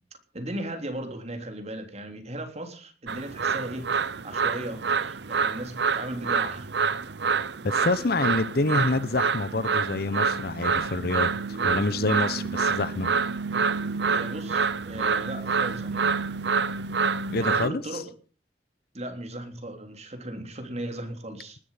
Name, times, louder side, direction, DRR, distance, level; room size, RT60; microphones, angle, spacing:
voice 1, 0.3-3.9 4.2-6.7 14.1-16.1 17.3-18.0 18.9-21.6, right 1 dB, 40° right, 3.6 m, -37 dB
sound 1, 3.1-17.7, right 5 dB, 70° right, 0.8 m, -27 dB
voice 2, 7.6-13.1 17.3-18.0, left 2 dB, 60° left, 1.0 m, -27 dB
19.5 x 11.5 x 5.8 m
head